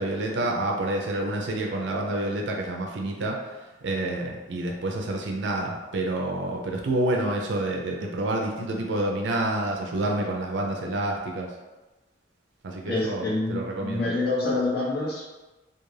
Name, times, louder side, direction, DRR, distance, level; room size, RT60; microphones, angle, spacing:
voice 1, 0.0-3.4 3.8-11.5 12.6-14.1, right 1 dB, 75° right, 0 dB, 0.4 m, -28 dB
voice 2, 12.8-15.3, left 2 dB, 60° left, -5 dB, 0.7 m, -27 dB
2.4 x 2.3 x 3.1 m, 1.1 s
head